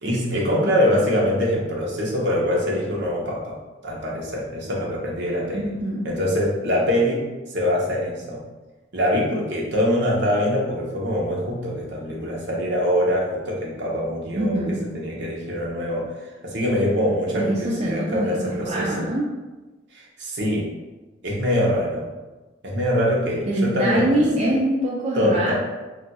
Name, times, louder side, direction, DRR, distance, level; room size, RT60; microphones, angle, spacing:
voice 1, 0.0-3.6 3.8-5.6 6.0-7.2 7.5-8.4 8.9-16.1 16.4-19.1 19.9-20.7 21.2-22.1 22.6-24.5 25.1-25.5, equal, 65° right, -3 dB, 0.8 m, -23 dB
voice 2, 5.5-6.1 14.3-14.8 17.3-19.3 23.4-25.5, right 1 dB, 35° right, -5 dB, 0.4 m, -24 dB
2.4 x 2.3 x 4.0 m, 1.2 s
head